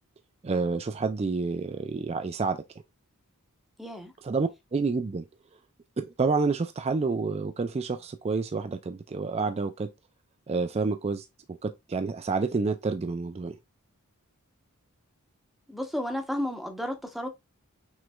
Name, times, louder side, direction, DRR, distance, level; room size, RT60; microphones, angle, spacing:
voice 1, 0.4-2.6 4.2-5.2 6.0-9.9 10.5-13.6, right 4 dB, 30° right, 0.3 m, -29 dB
voice 2, 3.8-4.1 15.7-17.3, left 1 dB, ahead, 0.8 m, -32 dB
6.2 x 3.2 x 2.3 m
head